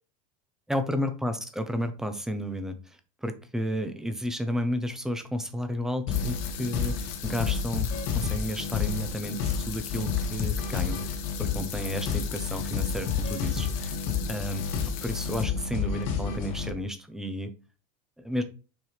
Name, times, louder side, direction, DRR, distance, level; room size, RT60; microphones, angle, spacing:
voice 1, 0.7-7.9 8.1-14.0 14.3-14.7 15.0-17.5 18.2-18.4, equal, 5° right, 8 dB, 0.6 m, -32 dB
sound 1, 6.1-16.7, left 6 dB, 70° left, 2.3 m, -30 dB
sound 2, 6.1-15.4, left 8 dB, 45° left, 1.2 m, -40 dB
6.4 x 4.7 x 3.3 m, 0.33 s
supercardioid pair, 160°, 18 cm